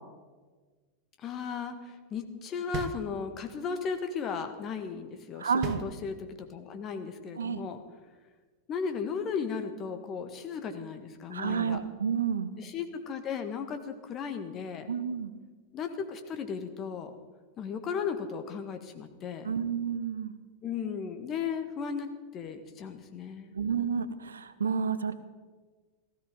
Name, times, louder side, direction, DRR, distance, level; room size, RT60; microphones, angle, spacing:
voice 1, 1.2-7.8 8.7-11.8 12.6-14.9 15.7-17.1 17.6-19.6 20.6-22.1 22.3-23.5, left 6 dB, 30° left, 7 dB, 1.6 m, -36 dB
sound 1, 2.7-3.6 5.6-6.5, right 8 dB, 35° right, 1.0 m, -39 dB
voice 2, 5.4-5.8 7.4-7.6 11.3-12.5 14.9-15.3 19.4-20.3 23.5-25.1, right 6 dB, 70° right, 13 dB, 0.8 m, -30 dB
16.0 x 14.0 x 5.2 m, 1.4 s
figure-of-eight pair, 90°, 0 cm